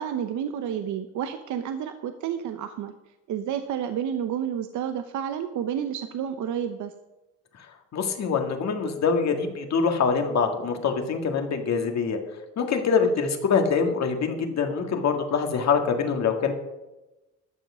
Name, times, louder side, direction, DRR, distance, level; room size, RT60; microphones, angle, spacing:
voice 1, 0.0-2.9 3.3-6.9 12.9-13.1, right 9 dB, 75° right, 8 dB, 0.8 m, -30 dB
voice 2, 7.9-12.2 12.6-16.5, left 5 dB, 60° left, 5 dB, 1.8 m, -24 dB
12.0 x 7.3 x 6.1 m, 1.0 s
cardioid pair, 90°, 30 cm